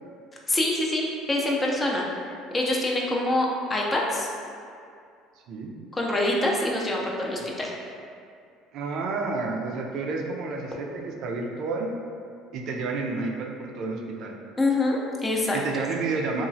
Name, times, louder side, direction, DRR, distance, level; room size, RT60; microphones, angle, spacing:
voice 1, 0.5-2.0 2.5-4.3 5.9-7.7 14.6-15.8, left 1 dB, 20° left, -2 dB, 0.4 m, -25 dB
voice 2, 8.7-10.9 11.2-11.9 12.5-14.4 15.5-16.5, right 3 dB, 65° right, 0 dB, 0.3 m, -30 dB
2.9 x 2.3 x 2.6 m, 2.4 s
supercardioid pair, 95°, 0 cm